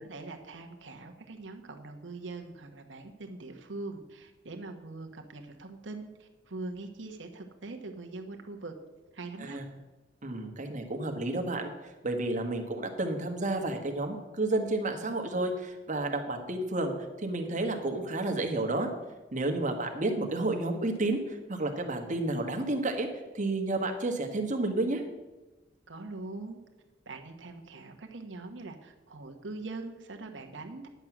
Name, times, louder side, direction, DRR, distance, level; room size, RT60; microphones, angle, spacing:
voice 1, 0.0-8.7 9.1-9.6 25.9-26.6 27.0-30.9, right 3 dB, 80° right, 4 dB, 1.1 m, -42 dB
voice 2, 10.2-11.7 12.0-16.9 17.2-18.9 19.3-23.1 23.3-25.0, right 2 dB, 45° right, 4 dB, 1.4 m, -31 dB
10.5 x 7.8 x 6.0 m, 1.1 s
head